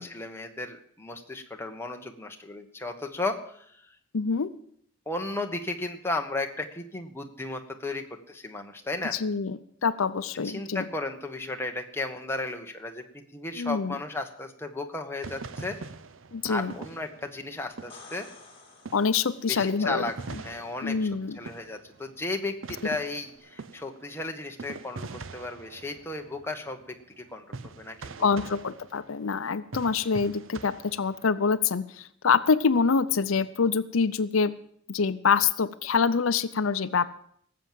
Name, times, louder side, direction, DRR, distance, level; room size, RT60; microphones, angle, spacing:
voice 1, 0.0-3.9 5.1-9.2 10.4-15.8 16.5-18.3 19.5-20.1 20.4-21.1 21.3-28.3, left 2 dB, 10° left, 3 dB, 1.3 m, -35 dB
voice 2, 4.1-4.5 9.1-10.9 13.6-14.0 16.3-16.7 18.9-20.1 20.8-21.4 28.2-34.5 34.9-37.1, left 5 dB, 80° left, 14 dB, 0.6 m, -25 dB
sound 1, 15.2-18.6 18.8-31.5, right 4 dB, 70° right, 0.7 m, -43 dB
sound 2, 17.9-19.6 23.4-23.5, left 4 dB, 30° left, 2.9 m, -50 dB
18.5 x 7.6 x 7.6 m, 0.65 s
head